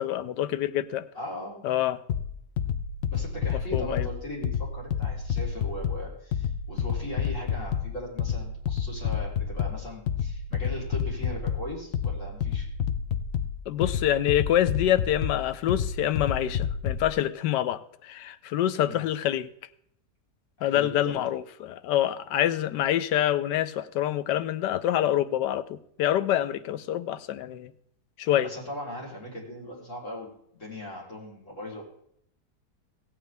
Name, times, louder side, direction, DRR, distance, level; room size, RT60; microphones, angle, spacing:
voice 1, 0.0-1.0 1.6-2.0 3.7-4.1 13.7-19.5 20.6-27.7 28.2-28.5, left 12 dB, 90° left, 1.3 m, -26 dB
voice 2, 1.1-1.8 3.1-12.7 18.8-19.0 20.6-21.2 28.4-31.8, equal, 45° left, 4.1 m, -39 dB
sound 1, 2.1-17.1, left 7 dB, 65° left, 0.6 m, -30 dB
16.0 x 8.9 x 3.4 m
omnidirectional pair, 1.8 m